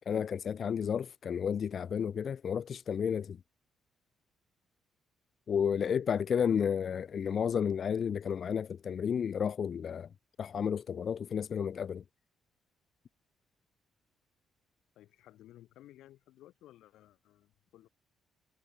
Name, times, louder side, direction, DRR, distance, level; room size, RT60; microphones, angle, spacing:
voice 1, 0.1-3.4 5.5-10.1 10.4-12.0, left 7 dB, 55° left, 0.7 m, -32 dB
voice 2, 14.9-17.9, left 14 dB, 85° left, 4.7 m, -57 dB
cardioid pair, 90°, 0 cm